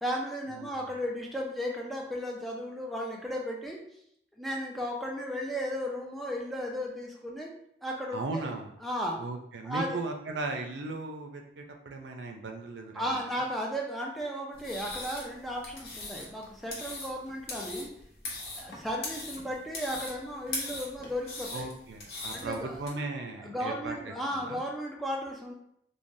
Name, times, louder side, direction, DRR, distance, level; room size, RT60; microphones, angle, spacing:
voice 1, 0.0-3.8 4.4-7.5 7.8-8.5 8.8-9.2 9.6-10.0 12.9-17.9 18.5-21.7 22.3-22.8 23.4-25.5, equal, ahead, -2 dB, 0.4 m, -35 dB
voice 2, 8.1-8.8 9.2-13.2 21.5-24.6, right 3 dB, 85° right, 3 dB, 0.5 m, -37 dB
sound 1, 14.5-22.9, left 2 dB, 60° left, 0.8 m, -40 dB
3.3 x 2.2 x 2.6 m, 0.72 s
head